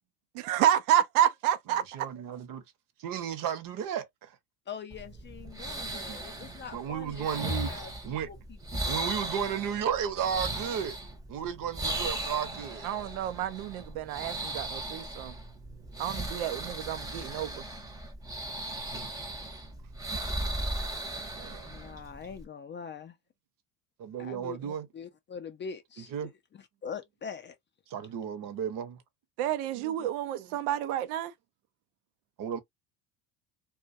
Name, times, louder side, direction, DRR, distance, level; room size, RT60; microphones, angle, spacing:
voice 1, 0.3-1.8 12.8-15.3 16.0-17.6 29.4-31.3, right 11 dB, 90° right, 0.5 m, -29 dB
voice 2, 1.7-2.6 3.0-4.3 6.1-6.2 6.7-7.7 8.0-8.3 8.9-11.0 11.3-12.9 21.4-21.8 24.0-24.9 26.1-26.3 27.9-29.0 29.7-30.1 30.4-30.6 32.4-32.6, right 8 dB, 50° right, 0.8 m, -34 dB
voice 3, 4.7-8.4 8.7-9.1 21.6-23.2 24.2-26.3 26.8-27.6, left 6 dB, 30° left, 0.4 m, -43 dB
sound 1, 4.9-22.4, right 1 dB, 10° right, 0.6 m, -37 dB
2.2 x 2.2 x 2.5 m
supercardioid pair, 100°, 44 cm